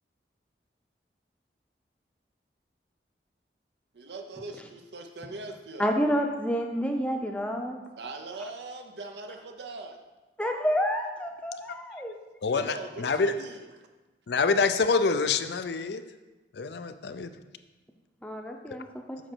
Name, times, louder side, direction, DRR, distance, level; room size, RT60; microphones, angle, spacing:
voice 1, 3.9-5.9 8.0-10.0 12.5-13.7, right 2 dB, 80° right, 4 dB, 0.7 m, -41 dB
voice 2, 5.8-7.8 10.4-12.1 18.2-19.2, equal, 5° left, 3 dB, 0.6 m, -29 dB
voice 3, 12.4-13.4 14.3-16.0 16.5-17.3 18.7-18.8, left 4 dB, 75° left, 10 dB, 0.5 m, -26 dB
8.0 x 5.9 x 4.5 m, 1.2 s
head